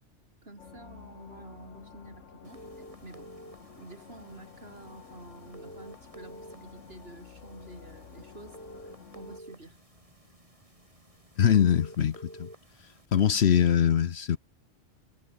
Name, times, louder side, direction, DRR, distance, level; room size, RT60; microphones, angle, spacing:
voice 1, 0.4-2.6 3.0-3.4 3.8-9.8, right 2 dB, 55° right, 5.3 m, -49 dB
sound 1, 0.6-9.4, left 6 dB, 85° left, 1.9 m, -51 dB
sound 2, 2.4-13.1, right 1 dB, 30° right, 5.9 m, -51 dB
voice 2, 11.4-12.5 13.1-14.4, left 9 dB, 65° left, 1.1 m, -23 dB
omnidirectional pair, 1.2 m